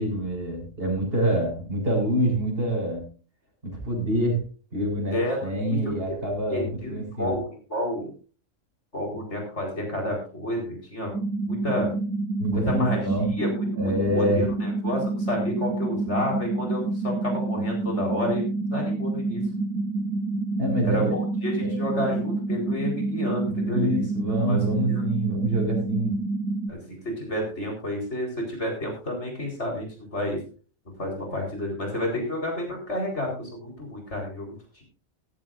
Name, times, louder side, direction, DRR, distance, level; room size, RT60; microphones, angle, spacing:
voice 1, 0.0-3.1 3.6-4.4 4.7-7.4 12.4-13.3 13.8-14.4 20.6-21.2 23.7-26.2, right 1 dB, 50° right, 0 dB, 6.7 m, -26 dB
voice 2, 5.1-6.2 6.5-6.9 7.2-8.1 8.9-11.1 11.5-11.9 12.5-13.0 13.4-18.4 18.7-19.4 20.8-24.0 24.5-25.0 26.7-26.8 27.2-30.4 31.0-34.5 34.7-34.8, left 1 dB, 65° left, 1 dB, 4.8 m, -30 dB
sound 1, 11.1-26.7, right 2 dB, 80° right, 1.5 m, -28 dB
15.0 x 15.0 x 2.6 m, 0.36 s
omnidirectional pair, 1.3 m